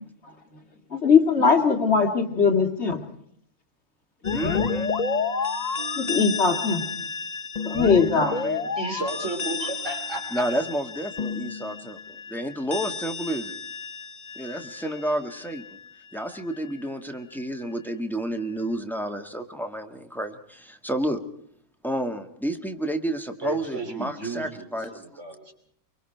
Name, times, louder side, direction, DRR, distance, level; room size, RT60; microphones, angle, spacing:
voice 1, 0.9-3.0 6.0-6.8 7.6-8.4, left 5 dB, 50° left, 4 dB, 2.3 m, -20 dB
sound 1, 4.2-15.8, left 5 dB, 35° left, 1.0 m, -30 dB
voice 2, 4.3-4.9 8.0-8.7 10.3-12.0 12.3-13.6 14.3-15.8 16.1-21.2 21.8-25.0, right 1 dB, ahead, 5 dB, 1.6 m, -30 dB
voice 3, 8.8-10.5 23.4-24.7 24.9-25.5, right 3 dB, 55° right, 4 dB, 3.4 m, -33 dB
24.0 x 24.0 x 4.6 m, 0.67 s
omnidirectional pair, 1.5 m